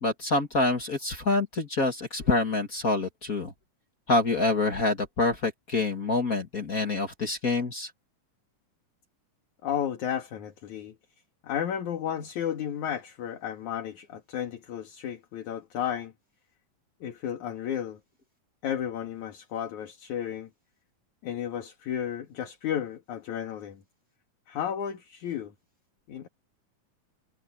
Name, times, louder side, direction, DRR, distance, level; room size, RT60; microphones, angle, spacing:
voice 1, 0.0-3.5 4.1-7.9, left 3 dB, 35° left, 1.7 m, -26 dB
voice 2, 9.6-11.0 11.4-16.1 17.0-18.0 18.6-20.5 21.2-23.8 24.5-25.5 26.1-26.3, left 9 dB, 65° left, 3.1 m, -33 dB
omnidirectional pair, 3.9 m